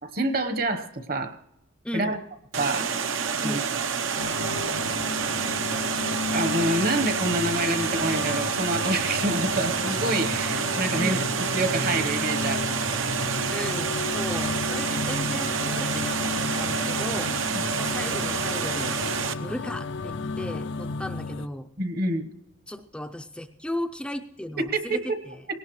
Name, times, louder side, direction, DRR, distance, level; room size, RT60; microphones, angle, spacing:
voice 1, 0.0-1.3 1.9-2.2 2.6-2.9 3.4-3.6 6.3-11.2 11.5-12.7 17.5-17.6 21.8-22.3 24.7-25.0, right 2 dB, 50° right, 9 dB, 1.1 m, -27 dB
Water, 2.5-19.3, right 6 dB, 75° right, 0.9 m, -28 dB
sound 1, 4.2-21.5, left 3 dB, 65° left, 0.5 m, -33 dB
voice 2, 13.5-19.0 19.4-21.7 22.7-25.4, left 1 dB, 5° left, 4 dB, 0.5 m, -36 dB
19.5 x 17.5 x 3.2 m, 0.83 s
head